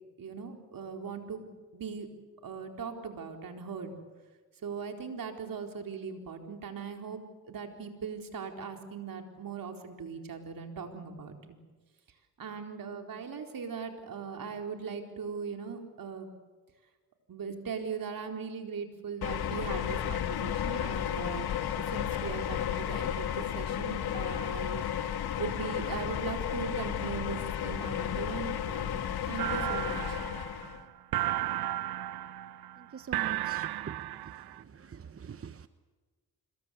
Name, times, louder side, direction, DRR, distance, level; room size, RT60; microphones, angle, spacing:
voice 1, 0.2-1.5 1.7-2.1 2.4-4.0 4.6-11.6 12.4-16.3 17.3-21.5 21.7-24.9 25.4-30.2, right 5 dB, 65° right, 4 dB, 4.2 m, -39 dB
sound 1, 19.2-30.8, left 9 dB, 80° left, 1.8 m, -33 dB
sound 2, 29.4-34.6, right 14 dB, 80° right, 0.7 m, -34 dB
voice 2, 32.9-34.1 34.6-35.7, right 6 dB, 40° right, 11 dB, 1.0 m, -44 dB
26.0 x 22.5 x 8.3 m, 1.4 s
cardioid pair, 75°, 37 cm